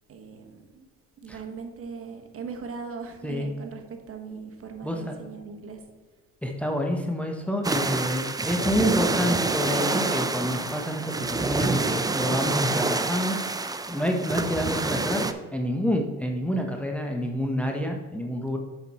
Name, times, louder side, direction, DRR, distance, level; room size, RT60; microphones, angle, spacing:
voice 1, 0.1-0.9 1.2-5.8, right 5 dB, 45° right, 5 dB, 1.3 m, -39 dB
voice 2, 4.8-5.1 6.4-15.2 15.5-18.6, equal, 5° left, 2 dB, 1.0 m, -28 dB
sound 1, 7.6-15.3, right 3 dB, 10° right, 0.5 m, -27 dB
7.2 x 6.2 x 4.2 m, 1.4 s
supercardioid pair, 85°, 31 cm